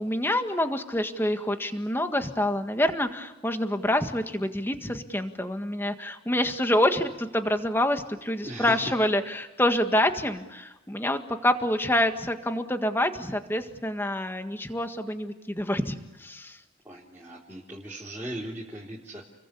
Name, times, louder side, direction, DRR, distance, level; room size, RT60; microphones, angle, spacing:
voice 1, 0.0-16.6, left 1 dB, 10° left, 7 dB, 1.7 m, -27 dB
voice 2, 8.4-8.8 16.9-19.2, right 1 dB, 10° right, -6 dB, 3.6 m, -38 dB
29.5 x 22.5 x 8.5 m, 1.1 s
head